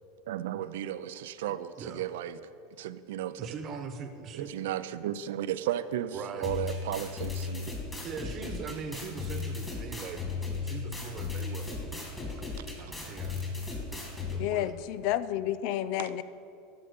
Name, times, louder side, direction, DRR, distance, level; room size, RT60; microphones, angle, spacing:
voice 1, 0.3-2.4 2.8-3.4 4.3-7.7 12.6-12.7 16.0-16.1, right 11 dB, 80° right, 13 dB, 0.4 m, -34 dB
voice 2, 1.8-2.1 3.4-4.6 6.1-6.5 8.0-10.3 10.6-14.7, right 5 dB, 40° right, 8 dB, 1.1 m, -41 dB
sound 1, 6.4-14.4, left 4 dB, 10° left, 2.7 m, -36 dB
voice 3, 14.4-16.2, left 12 dB, 60° left, 15 dB, 0.5 m, -30 dB
13.0 x 5.6 x 6.9 m, 2.6 s
supercardioid pair, 115°, 0 cm